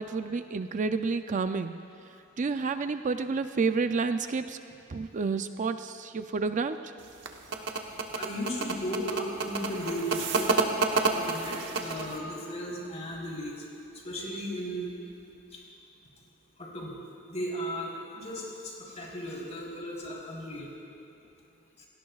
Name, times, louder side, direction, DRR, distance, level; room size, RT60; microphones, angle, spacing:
voice 1, 0.0-1.8 2.4-4.6 4.9-6.9, right 4 dB, 40° right, 9 dB, 0.4 m, -30 dB
sound 1, 7.0-12.2, right 4 dB, 65° right, 1.2 m, -29 dB
voice 2, 8.1-10.5 11.1-13.5 14.0-14.9 15.5-15.6 16.6-16.9 17.3-20.7 21.8-21.9, equal, 35° left, -4 dB, 3.9 m, -36 dB
29.0 x 17.5 x 2.4 m, 2.9 s
head